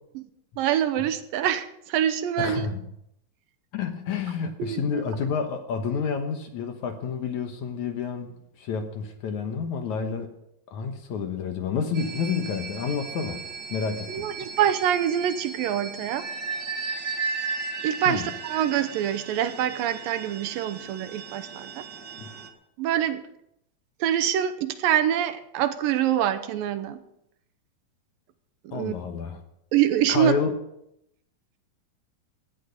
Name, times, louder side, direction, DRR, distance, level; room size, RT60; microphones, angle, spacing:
voice 1, 0.6-2.7 4.6-5.0 14.1-16.3 17.8-21.8 22.8-23.2 24.0-27.0 28.6-28.9 29.7-30.3, right 10 dB, 80° right, 11 dB, 2.4 m, -25 dB
voice 2, 2.4-2.9 3.7-8.3 8.6-10.3 10.7-13.4 13.7-14.3 18.1-18.3 22.2-22.3 28.7-29.4 30.1-30.5, left 6 dB, 65° left, 6 dB, 2.2 m, -29 dB
sound 1, 11.9-22.5, right 4 dB, 40° right, 1.7 m, -36 dB
16.5 x 11.5 x 5.3 m, 0.78 s
omnidirectional pair, 4.3 m